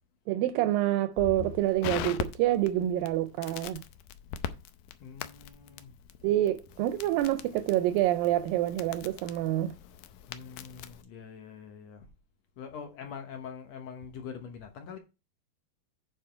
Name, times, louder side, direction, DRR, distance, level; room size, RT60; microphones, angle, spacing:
voice 1, 0.3-3.8 6.2-9.7, right 14 dB, 80° right, 2.2 m, -27 dB
Crackle, 1.2-11.0, left 10 dB, 85° left, 1.7 m, -41 dB
voice 2, 5.0-5.9 10.3-12.0 12.6-15.0, left 7 dB, 65° left, 1.7 m, -44 dB
9.3 x 4.9 x 4.5 m
omnidirectional pair, 4.3 m